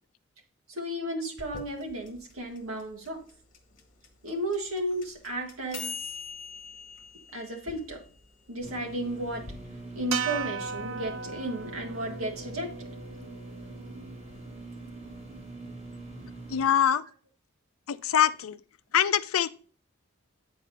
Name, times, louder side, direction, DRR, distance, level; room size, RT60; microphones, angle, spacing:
voice 1, 0.7-3.2 4.2-6.0 7.3-8.0 8.5-9.6 9.9-12.7, right 1 dB, 85° right, 1.9 m, -33 dB
sound 1, 1.4-9.5, left 5 dB, 40° left, 1.4 m, -43 dB
sound 2, 8.6-16.6, right 2 dB, 30° right, 4.3 m, -43 dB
sound 3, 10.1-14.5, right 6 dB, 65° right, 0.5 m, -37 dB
voice 2, 16.5-17.1 17.9-18.6 18.9-19.5, left 9 dB, 85° left, 0.5 m, -24 dB
9.1 x 4.6 x 4.2 m
head